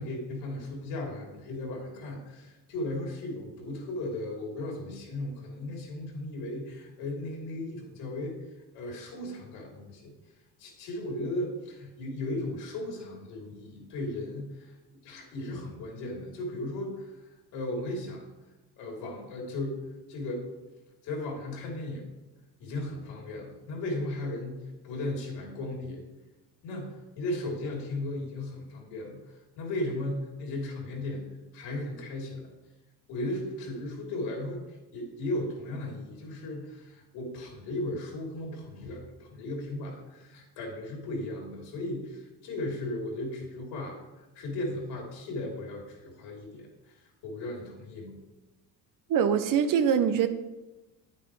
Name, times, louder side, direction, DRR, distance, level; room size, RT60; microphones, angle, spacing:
voice 1, 0.0-8.3 8.7-10.1 10.6-18.3 18.8-20.5 21.0-22.1 22.6-26.0 26.6-29.2 29.6-32.5 33.1-34.6 34.9-48.2, left 1 dB, 70° left, -1 dB, 3.3 m, -36 dB
voice 2, 49.1-50.3, right 8 dB, 50° right, 10 dB, 0.8 m, -23 dB
9.5 x 8.5 x 3.2 m, 1.1 s
supercardioid pair, 85°, 42 cm